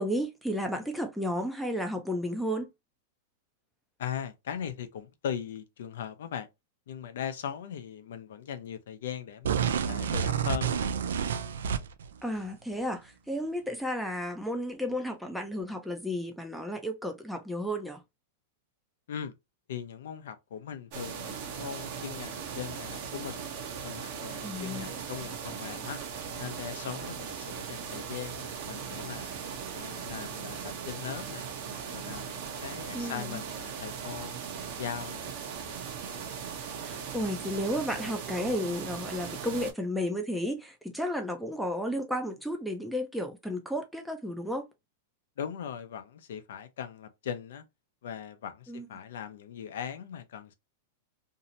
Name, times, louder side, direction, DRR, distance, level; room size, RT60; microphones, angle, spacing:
voice 1, 0.0-2.7 12.2-18.0 24.4-24.9 32.9-33.4 36.8-44.7 48.7-48.9, equal, ahead, 0.4 m, -33 dB
voice 2, 4.0-6.5 6.9-10.8 19.1-19.3 19.7-23.4 23.8-26.0 26.4-29.3 29.7-31.5 31.9-34.4 34.8-35.3 45.4-47.6 48.0-50.5, left 8 dB, 75° left, 0.5 m, -39 dB
sound 1, 9.4-12.1, right 7 dB, 90° right, 0.3 m, -29 dB
sound 2, 20.9-39.7, right 7 dB, 50° right, 0.7 m, -39 dB
2.7 x 2.0 x 2.6 m
supercardioid pair, 140°, 0 cm